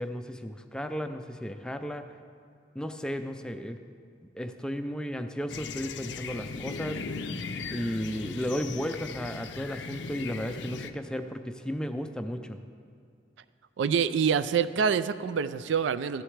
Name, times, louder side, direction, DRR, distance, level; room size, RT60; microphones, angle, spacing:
voice 1, 0.0-2.2 2.8-3.8 4.3-7.1 7.7-12.6, equal, 5° left, 7 dB, 0.3 m, -34 dB
sound 1, 5.5-10.9, left 4 dB, 75° left, 0.5 m, -38 dB
voice 2, 13.8-16.2, right 6 dB, 80° right, 13 dB, 0.4 m, -26 dB
15.0 x 11.0 x 3.3 m, 2.3 s
head